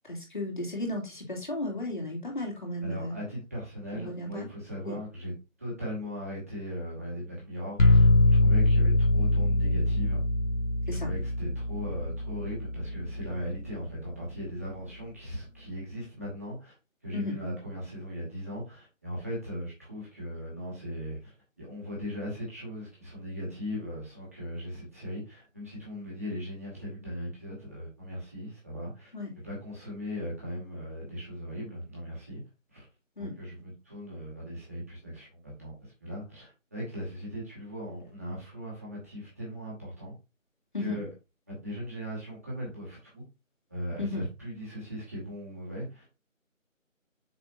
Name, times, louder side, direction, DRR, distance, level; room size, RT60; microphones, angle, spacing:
voice 1, 0.1-3.2 3.9-4.5 4.8-5.0 10.9-11.1 17.1-17.3 29.1-29.3 33.2-33.3 40.7-41.0 44.0-44.2, left 2 dB, 35° left, 0 dB, 2.9 m, -34 dB
voice 2, 2.8-5.3 5.6-8.1 8.4-10.2 11.0-16.7 17.0-29.1 29.4-32.4 32.7-32.9 33.2-40.1 40.8-41.1 41.5-43.2 43.7-46.2, equal, 10° right, -5 dB, 1.9 m, -38 dB
sound 1, 7.8-13.6, left 2 dB, 85° left, 1.8 m, -24 dB
6.7 x 6.5 x 2.6 m, 0.26 s
figure-of-eight pair, 170°, 40 cm